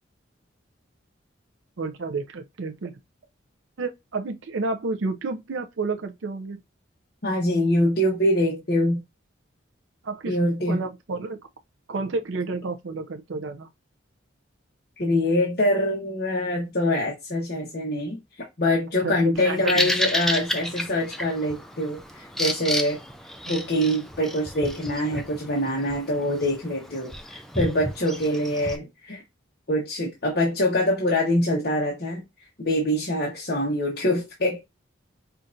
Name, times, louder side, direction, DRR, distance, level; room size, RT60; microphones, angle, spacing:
voice 1, 1.8-3.0 3.8-6.6 10.0-10.4 10.7-11.4 11.9-13.7 19.0-19.9, right 3 dB, 80° right, 0.5 m, -30 dB
voice 2, 7.2-9.0 10.3-10.8 15.0-18.2 18.6-23.0 23.5-29.2 29.7-32.2 32.6-34.6, left 1 dB, 50° left, 1.2 m, -24 dB
Bird vocalization bird call bird song, 19.4-28.8, left 1 dB, ahead, 0.4 m, -31 dB
5.6 x 2.5 x 2.6 m
head